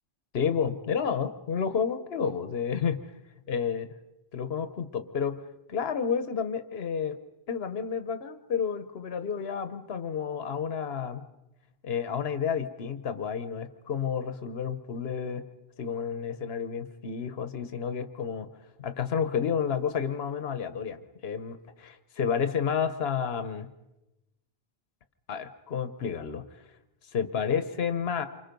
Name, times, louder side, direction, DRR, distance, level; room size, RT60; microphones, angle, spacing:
voice 1, 0.3-3.0 3.5-3.9 4.3-5.4 5.7-7.2 7.5-11.3 11.8-15.5 15.8-18.5 18.8-23.7 25.3-26.4 27.1-28.3, left 7 dB, 75° left, 10 dB, 1.2 m, -30 dB
28.0 x 24.5 x 5.3 m, 0.96 s
omnidirectional pair, 1.0 m